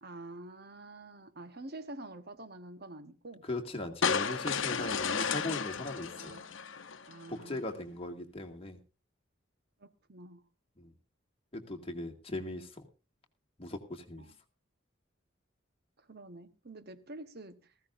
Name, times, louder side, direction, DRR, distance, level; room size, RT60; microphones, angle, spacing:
voice 1, 0.0-3.5 6.2-6.5 7.1-7.8 9.8-10.5 14.2-14.4 16.0-17.7, right 2 dB, 55° right, 1.1 m, -47 dB
voice 2, 3.5-6.1 7.3-8.8 10.8-10.9 11.5-12.8 13.6-14.2, left 2 dB, 30° left, 2.1 m, -38 dB
sound 1, 4.0-7.3, left 6 dB, 90° left, 0.8 m, -33 dB
19.0 x 15.5 x 2.6 m
head